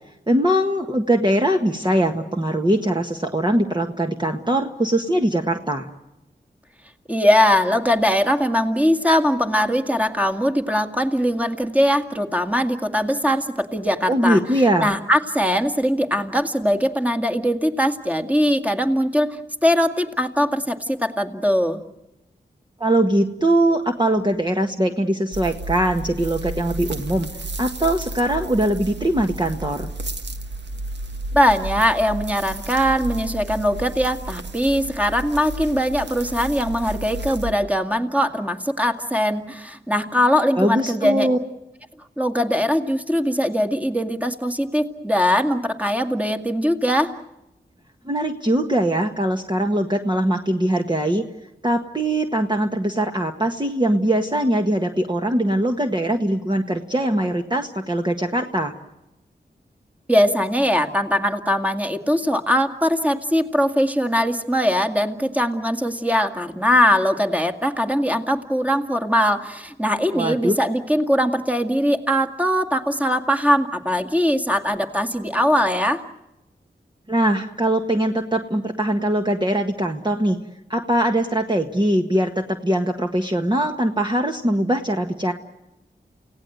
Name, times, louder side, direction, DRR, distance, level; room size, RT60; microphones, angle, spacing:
voice 1, 0.3-5.9 14.1-14.9 22.8-27.3 27.6-29.9 40.6-41.4 48.0-51.2 51.6-58.7 70.1-70.5 77.1-80.4 80.7-85.3, right 1 dB, 25° right, 3 dB, 1.6 m, -21 dB
voice 2, 7.1-14.4 14.8-21.8 31.3-41.3 42.2-47.1 60.1-76.0, equal, 10° right, 6 dB, 2.2 m, -21 dB
sound 1, 25.3-37.5, right 2 dB, 75° right, 1.6 m, -32 dB
29.0 x 17.5 x 8.0 m, 0.94 s
cardioid pair, 45°, 18 cm